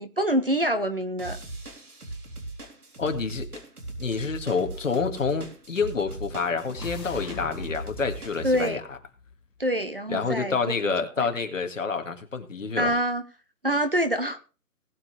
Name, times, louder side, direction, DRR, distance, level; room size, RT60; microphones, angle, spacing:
voice 1, 0.0-1.4 8.4-8.8 9.6-10.6 10.8-11.3 12.8-13.2 13.6-14.4, equal, 35° right, 10 dB, 0.8 m, -26 dB
sound 1, 1.2-8.7, right 2 dB, 65° right, 3.7 m, -39 dB
voice 2, 3.0-3.6 4.0-9.0 10.1-12.9, left 5 dB, 50° left, 5 dB, 2.0 m, -28 dB
sound 2, 5.6-9.9, left 5 dB, 85° left, 1.6 m, -42 dB
19.0 x 7.9 x 3.3 m, 0.34 s
hypercardioid pair, 175°, 48 cm